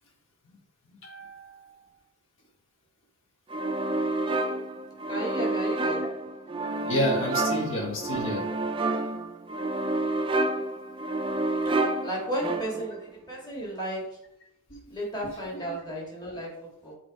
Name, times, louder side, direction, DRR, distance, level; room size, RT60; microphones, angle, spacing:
voice 1, 1.0-1.8 6.8-8.4 9.0-9.1 14.7-14.8 15.6-15.8, equal, 60° left, -1 dB, 1.4 m, -30 dB
sound 1, 3.5-13.0, right 2 dB, 25° right, 0.3 m, -29 dB
voice 2, 5.1-6.0 12.0-14.0 14.9-17.0, right 1 dB, 20° left, -4 dB, 1.7 m, -34 dB
7.1 x 3.1 x 4.6 m, 0.79 s
head